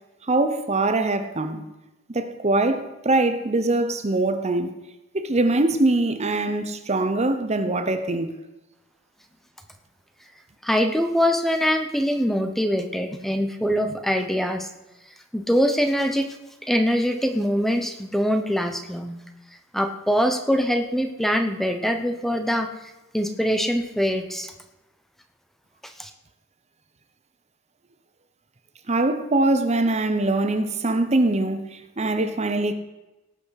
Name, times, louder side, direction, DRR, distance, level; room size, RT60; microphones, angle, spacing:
voice 1, 0.3-1.6 2.1-4.7 5.1-8.3 28.9-32.7, right 2 dB, 30° right, 0.8 m, -23 dB
voice 2, 10.6-14.7 15.3-16.3 16.7-19.2 19.7-22.7 23.1-24.5 25.8-26.1, equal, ahead, 0.9 m, -23 dB
18.0 x 6.2 x 6.5 m
head